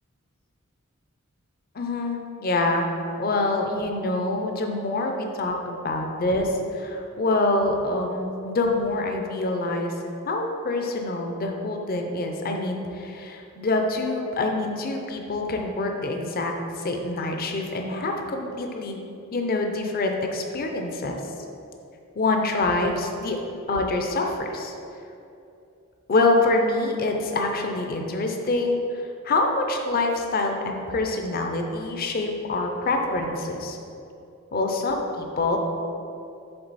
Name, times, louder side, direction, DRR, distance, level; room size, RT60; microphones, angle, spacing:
voice 1, 1.7-2.9 3.2-9.9 10.3-19.0 19.3-21.1 22.2-23.4 23.7-24.7 26.1-33.8 34.5-35.6, left 2 dB, 45° left, 3 dB, 0.5 m, -26 dB
7.8 x 3.6 x 4.1 m, 2.7 s
head